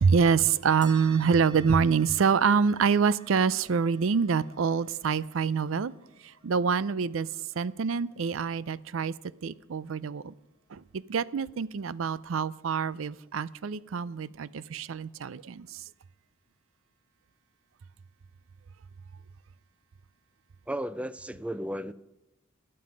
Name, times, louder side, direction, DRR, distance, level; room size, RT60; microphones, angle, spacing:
voice 1, 0.0-5.9 6.4-7.3 7.6-9.1 9.4-10.3 10.7-15.8, right 6 dB, 85° right, 0.5 m, -26 dB
sound 1, 0.8-9.7, right 2 dB, 25° right, 1.6 m, -53 dB
voice 2, 20.7-21.9, right 1 dB, 5° right, 0.4 m, -34 dB
21.0 x 7.8 x 5.2 m
head